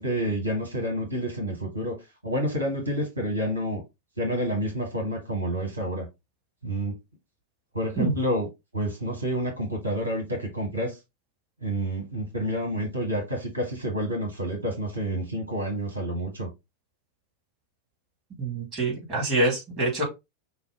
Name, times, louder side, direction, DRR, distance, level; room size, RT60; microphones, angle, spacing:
voice 1, 0.0-3.8 4.2-6.1 6.6-7.0 7.7-8.5 8.7-11.0 11.6-16.5, equal, 80° right, 1.5 m, -29 dB
voice 2, 18.4-20.0, right 2 dB, 30° right, 2.3 m, -26 dB
5.5 x 2.4 x 3.8 m
figure-of-eight pair, 90°, 0 cm